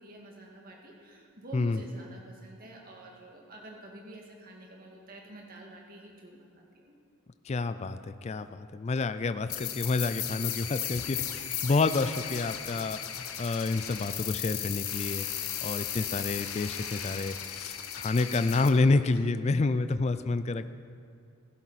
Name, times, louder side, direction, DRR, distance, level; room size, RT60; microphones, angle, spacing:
voice 1, 0.0-6.9 11.4-11.5 19.2-19.3, right 1 dB, 45° right, -1 dB, 1.9 m, -48 dB
voice 2, 7.5-15.3 15.6-20.7, left 3 dB, 30° left, 12 dB, 0.3 m, -29 dB
sound 1, 9.5-18.7, left 10 dB, 90° left, 1.0 m, -36 dB
16.0 x 11.5 x 4.2 m, 2.3 s
head